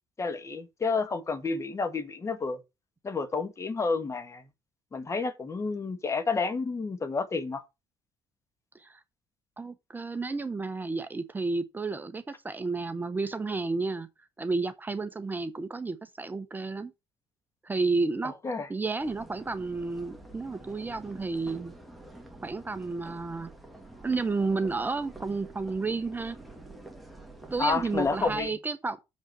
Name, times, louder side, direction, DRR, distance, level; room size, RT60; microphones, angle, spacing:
voice 1, 0.2-2.6 3.0-4.4 4.9-7.6 18.2-18.7 27.6-28.5, left 4 dB, 30° left, 1.6 m, -30 dB
voice 2, 9.6-14.1 14.4-16.9 17.6-18.3 18.7-21.7 22.4-23.5 24.0-26.4 27.5-29.0, right 3 dB, 20° right, 0.9 m, -31 dB
sound 1, 19.0-28.5, right 2 dB, ahead, 2.1 m, -48 dB
7.3 x 5.3 x 6.7 m
cardioid pair, 100°, 10 cm